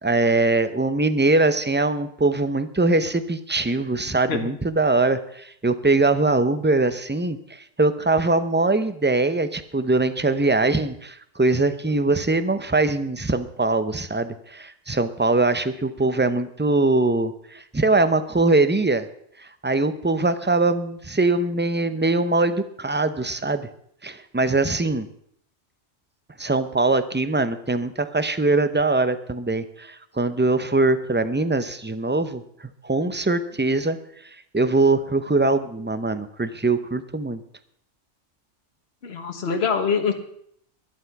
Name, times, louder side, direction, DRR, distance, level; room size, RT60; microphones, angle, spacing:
voice 1, 0.0-19.1 19.4-23.7 24.0-25.1 26.4-34.0 34.2-37.4, right 2 dB, 15° right, 11 dB, 0.5 m, -22 dB
voice 2, 4.1-4.5 39.0-40.1, left 6 dB, 60° left, 5 dB, 1.5 m, -25 dB
11.5 x 11.5 x 5.9 m, 0.68 s
omnidirectional pair, 1.2 m